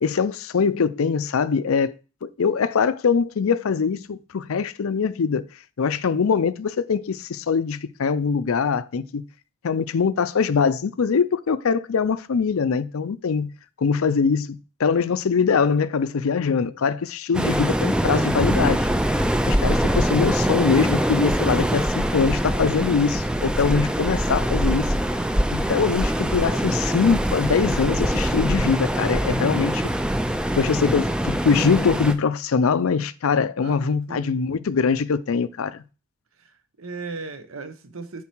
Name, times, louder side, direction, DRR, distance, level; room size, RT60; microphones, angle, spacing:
voice 1, 0.0-1.9 2.2-5.4 5.8-9.3 9.6-13.5 13.8-18.9 19.5-24.9 25.5-29.8 30.6-35.8, left 5 dB, 75° left, 0.5 m, -22 dB
Waves surf, 17.3-32.1, equal, 5° right, 0.4 m, -23 dB
voice 2, 33.6-34.5 36.4-38.2, right 3 dB, 70° right, 0.9 m, -37 dB
7.2 x 4.7 x 4.5 m
head